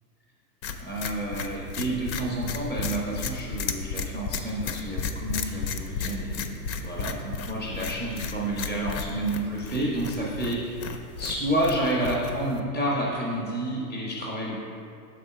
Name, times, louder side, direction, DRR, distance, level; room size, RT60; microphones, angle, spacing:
sound 1, 0.6-12.6, left 5 dB, 90° left, 0.7 m, -34 dB
voice 1, 0.8-10.9 11.2-14.6, right 1 dB, 5° left, -4 dB, 0.4 m, -30 dB
6.3 x 4.2 x 5.7 m, 2.6 s
supercardioid pair, 165°, 50 cm